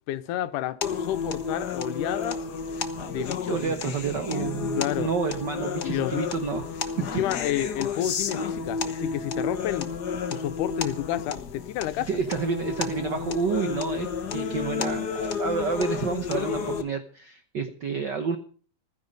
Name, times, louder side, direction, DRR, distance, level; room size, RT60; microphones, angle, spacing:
voice 1, 0.1-2.4 3.1-4.0 4.8-5.1 5.8-6.3 7.0-9.9 10.3-12.1, left 12 dB, 85° left, 2.4 m, -30 dB
sound 1, 0.8-16.8, left 6 dB, 55° left, 1.2 m, -31 dB
voice 2, 3.1-6.7 7.0-7.1 12.1-18.4, right 5 dB, 70° right, 1.0 m, -29 dB
15.5 x 14.5 x 5.3 m
omnidirectional pair, 3.6 m